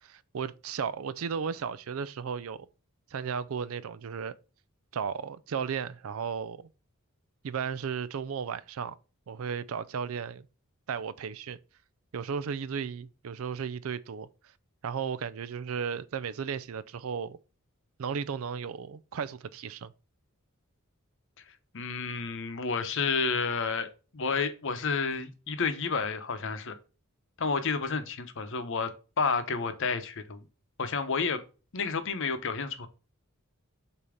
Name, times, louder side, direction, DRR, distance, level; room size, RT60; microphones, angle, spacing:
voice 1, 0.0-2.7 3.1-4.3 4.9-6.7 7.4-9.0 9.3-10.5 10.9-11.6 12.1-14.3 14.8-17.4 18.0-19.9, right 6 dB, 70° right, 0.4 m, -34 dB
voice 2, 21.7-23.9 24.1-26.8 27.4-28.9 29.2-30.4 30.8-31.4 31.7-32.9, left 5 dB, 60° left, 0.8 m, -30 dB
6.8 x 2.8 x 4.9 m
head